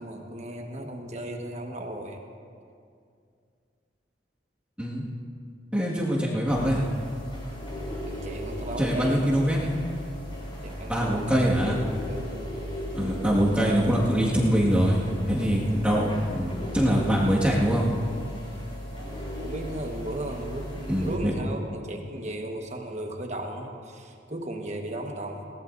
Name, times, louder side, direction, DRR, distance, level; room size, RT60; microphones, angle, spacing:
voice 1, 0.0-2.2 8.1-9.3 10.6-11.6 12.1-12.3 18.9-25.4, right 1 dB, 40° right, 2 dB, 1.4 m, -36 dB
voice 2, 5.7-6.8 8.8-9.7 10.9-11.7 12.9-15.0 15.3-17.9 20.9-21.3, equal, 5° right, -6 dB, 1.9 m, -23 dB
sound 1, 6.5-21.2, equal, 30° left, 3.7 m, -37 dB
21.0 x 18.5 x 2.7 m, 2.3 s
head